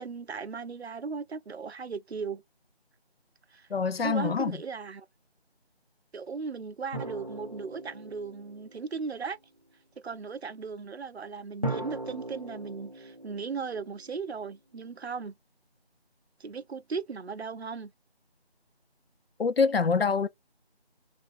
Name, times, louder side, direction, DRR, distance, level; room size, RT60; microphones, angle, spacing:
voice 1, 0.0-2.4 3.5-3.7 4.0-5.1 6.1-9.4 10.0-15.3 16.4-17.9, right 5 dB, 75° right, 0.5 m, -37 dB
voice 2, 3.7-4.6 19.4-20.3, left 5 dB, 65° left, 0.5 m, -25 dB
sound 1, 6.9-9.2 11.6-14.5, right 1 dB, 35° right, 0.6 m, -39 dB
3.3 x 2.5 x 4.3 m
figure-of-eight pair, 170°, 32 cm